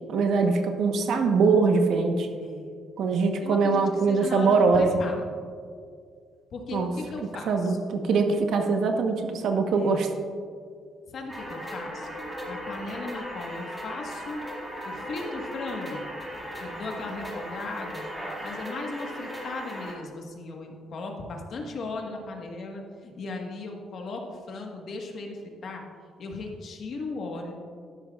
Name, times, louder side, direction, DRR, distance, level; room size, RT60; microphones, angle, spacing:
voice 1, 0.1-2.3 3.0-4.9 6.7-6.9 7.5-10.1, right 4 dB, 65° right, 5 dB, 1.0 m, -22 dB
voice 2, 2.4-2.7 3.2-5.4 6.5-7.8 9.7-10.1 11.1-12.1 12.5-14.5 14.8-16.1 16.6-25.8 26.2-27.5, left 3 dB, 50° left, 2 dB, 1.4 m, -37 dB
sound 1, 11.3-19.9, equal, 10° right, 2.2 m, -37 dB
12.5 x 11.0 x 2.4 m, 2.1 s
cardioid pair, 155°, 0 cm